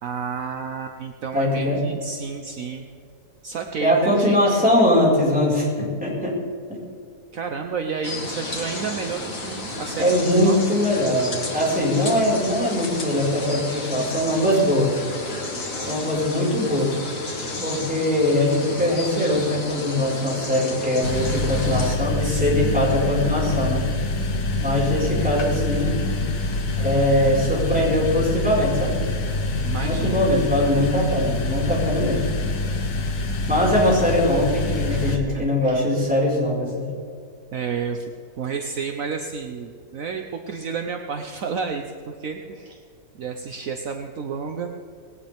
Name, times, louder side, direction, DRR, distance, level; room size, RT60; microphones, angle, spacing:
voice 1, 0.0-2.8 3.4-4.4 7.3-10.6 22.2-22.9 29.6-30.3 34.9-35.9 37.5-38.1 38.4-42.8 43.2-44.8, right 5 dB, 60° right, 5 dB, 1.2 m, -31 dB
voice 2, 1.3-1.8 3.8-6.4 6.7-6.8 10.0-15.0 15.8-17.0 17.6-23.9 24.6-25.9 26.8-28.9 29.8-32.2 33.5-36.9, left 1 dB, 5° right, -5 dB, 5.1 m, -21 dB
sound 1, 8.0-22.0, left 2 dB, 60° left, 2.5 m, -32 dB
sound 2, 21.0-35.2, left 2 dB, 80° left, 1.8 m, -25 dB
19.5 x 18.0 x 3.6 m, 2.4 s
omnidirectional pair, 1.7 m